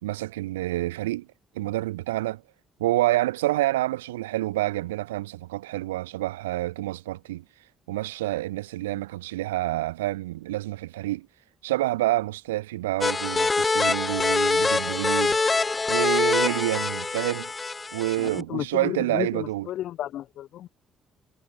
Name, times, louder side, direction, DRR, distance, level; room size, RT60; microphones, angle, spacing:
voice 1, 0.0-1.3 1.6-2.4 2.8-7.4 7.9-11.3 11.6-15.5 15.9-17.5 17.9-19.7, right 16 dB, 75° right, 3.6 m, -28 dB
sound 1, 13.0-18.4, left 3 dB, 25° left, 0.9 m, -24 dB
voice 2, 18.2-20.7, left 12 dB, 60° left, 2.8 m, -33 dB
figure-of-eight pair, 45°, 0 cm